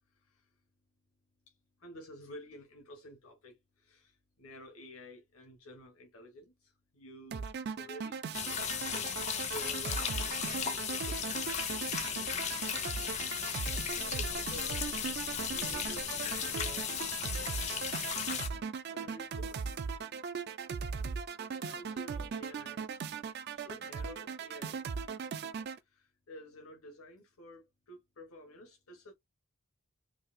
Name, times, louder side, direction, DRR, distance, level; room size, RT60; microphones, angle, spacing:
voice 1, 1.8-7.5 7.8-8.6 8.9-11.3 13.5-15.0 15.5-17.0 17.5-17.7 18.9-19.6 21.6-22.8 23.5-24.8 25.8-29.1, equal, 80° left, 1.0 m, -51 dB
sound 1, 7.3-25.8, right 5 dB, 50° right, 0.3 m, -39 dB
sound 2, 8.3-18.5, left 8 dB, 30° left, 0.5 m, -36 dB
3.9 x 2.6 x 2.5 m
head